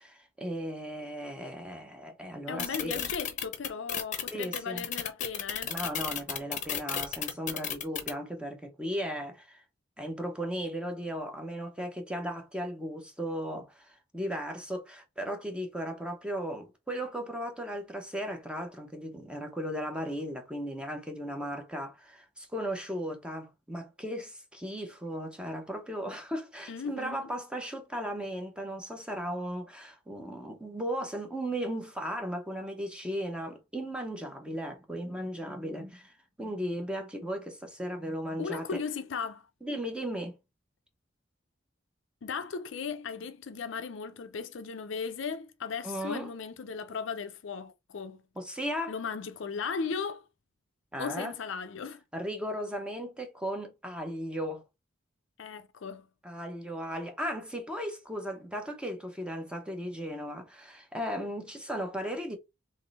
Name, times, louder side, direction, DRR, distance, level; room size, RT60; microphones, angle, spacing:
voice 1, 0.0-3.0 4.3-4.9 5.6-9.6 10.0-36.1 36.4-38.7 39.6-40.4 45.8-46.3 48.4-48.9 50.9-51.3 52.1-54.6 56.2-62.4, equal, 5° right, 0.9 m, -36 dB
voice 2, 2.5-5.8 26.7-27.3 38.4-39.5 42.2-48.2 48.9-50.2 51.0-52.0 55.4-56.1, left 5 dB, 70° left, 0.5 m, -37 dB
sound 1, 2.6-8.1, left 8 dB, 40° left, 0.8 m, -33 dB
3.7 x 3.1 x 4.0 m
head